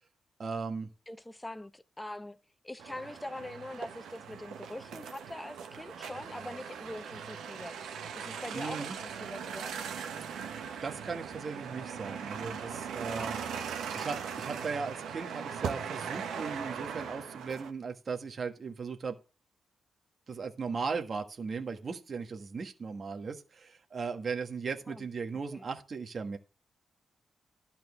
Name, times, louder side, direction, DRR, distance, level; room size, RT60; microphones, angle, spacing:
voice 1, 0.4-0.9 8.5-9.0 10.8-13.4 13.9-19.2 20.3-26.4, right 5 dB, 45° right, 1.5 m, -37 dB
voice 2, 1.1-2.4 2.6-7.8 8.1-9.9 13.2-13.6 24.9-25.1 25.5-25.7, left 1 dB, 10° left, 0.9 m, -43 dB
sound 1, 2.8-17.7, right 7 dB, 90° right, 1.3 m, -40 dB
12.0 x 4.4 x 7.1 m
cardioid pair, 95°, 0 cm